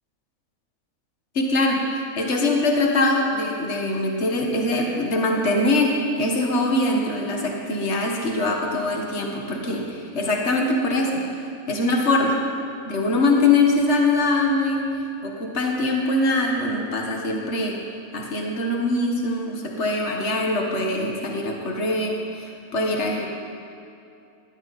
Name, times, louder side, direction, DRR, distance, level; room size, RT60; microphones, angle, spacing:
voice 1, 1.4-1.8 2.2-5.9 6.2-11.2 11.7-12.4 12.9-14.8 15.2-17.8 18.1-23.3, left 2 dB, 50° left, 0 dB, 2.0 m, -23 dB
20.0 x 15.0 x 4.3 m, 2.6 s
omnidirectional pair, 1.5 m